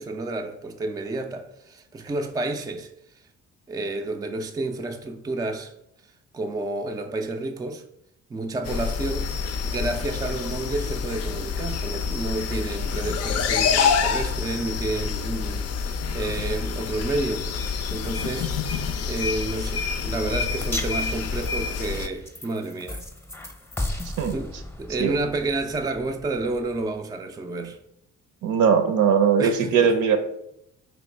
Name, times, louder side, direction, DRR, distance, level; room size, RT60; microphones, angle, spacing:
voice 1, 0.0-2.9 3.7-5.7 6.3-7.8 8.3-9.3 9.6-17.5 17.9-18.5 19.0-23.0 24.3-27.8 29.4-29.9, right 2 dB, 15° right, 0.3 m, -30 dB
sound 1, 8.7-22.1, left 6 dB, 55° left, 0.4 m, -27 dB
sound 2, 20.6-27.0, left 1 dB, 10° left, 0.7 m, -36 dB
voice 2, 28.4-30.2, right 7 dB, 75° right, 0.6 m, -20 dB
3.0 x 3.0 x 4.4 m
cardioid pair, 90°, 30 cm